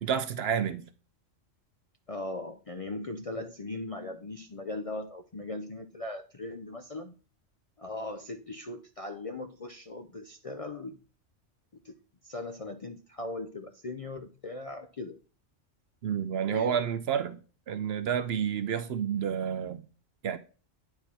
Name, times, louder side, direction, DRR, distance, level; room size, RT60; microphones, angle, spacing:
voice 1, 0.0-0.9 16.0-17.4 17.7-19.8 20.2-20.4, right 8 dB, 65° right, 0.8 m, -30 dB
voice 2, 2.1-7.1 7.8-11.0 11.8-11.9 12.2-15.2 16.5-16.8, left 2 dB, 40° left, 0.5 m, -39 dB
9.4 x 4.9 x 4.3 m
omnidirectional pair, 1.3 m